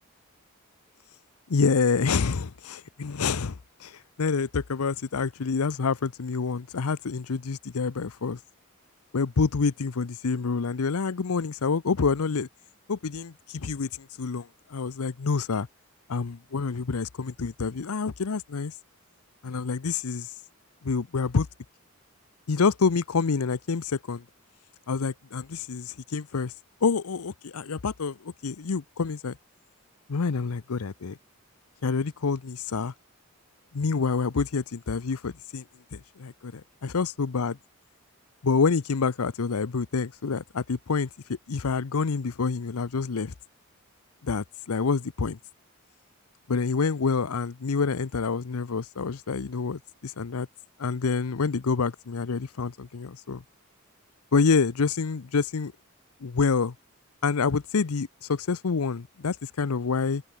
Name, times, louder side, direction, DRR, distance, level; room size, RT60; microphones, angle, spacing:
voice 1, 1.5-8.4 9.1-12.5 12.9-15.7 16.1-18.7 19.4-20.3 20.8-21.5 22.5-24.2 24.9-26.5 26.8-29.4 30.1-31.2 31.8-32.9 33.7-35.6 35.9-37.6 38.4-41.1 41.5-43.3 44.2-45.4 46.5-50.5 50.8-53.4 54.3-55.7 56.2-56.7 57.2-60.2, left 5 dB, 90° left, 0.7 m, -27 dB
head